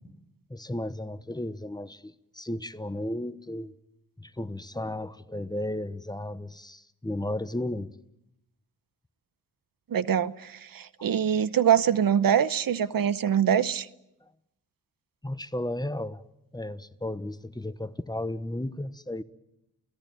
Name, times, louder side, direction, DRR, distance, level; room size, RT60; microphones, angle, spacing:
voice 1, 0.5-3.7 4.2-7.9 13.2-13.3 15.2-16.2 16.5-19.2, left 1 dB, 10° left, 1.1 m, -34 dB
voice 2, 9.9-13.9, right 9 dB, 65° right, 0.9 m, -24 dB
29.0 x 18.0 x 9.1 m
cardioid pair, 70°, 38 cm